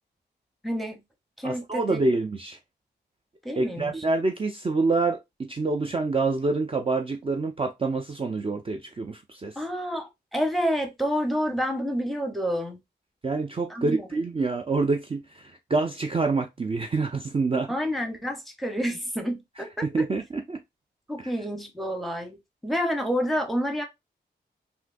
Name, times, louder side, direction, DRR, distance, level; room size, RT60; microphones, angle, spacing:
voice 1, 0.6-1.0 1.4-2.0 3.4-4.0 9.6-12.8 13.7-14.1 17.7-20.1 21.1-23.8, equal, ahead, 0.9 m, -29 dB
voice 2, 1.4-2.6 3.6-9.6 13.2-17.7 19.8-20.6 21.2-21.3, right 3 dB, 30° right, 0.5 m, -27 dB
3.6 x 2.6 x 2.5 m
cardioid pair, 60°, 19 cm